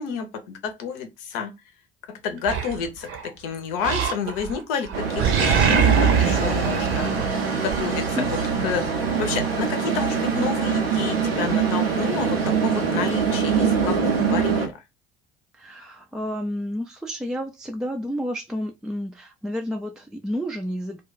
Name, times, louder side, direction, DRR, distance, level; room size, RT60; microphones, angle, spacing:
voice 1, 0.0-1.5 2.1-8.4 8.6-8.9 9.2-14.7, left 6 dB, 65° left, 0.7 m, -30 dB
Animal, 2.5-3.3 3.8-4.6 4.9-7.8, right 6 dB, 50° right, 0.7 m, -22 dB
sound 1, 4.9-14.7, right 6 dB, 90° right, 0.6 m, -24 dB
voice 2, 15.5-21.0, equal, ahead, 0.3 m, -30 dB
2.2 x 2.1 x 3.9 m
figure-of-eight pair, 55°, 29 cm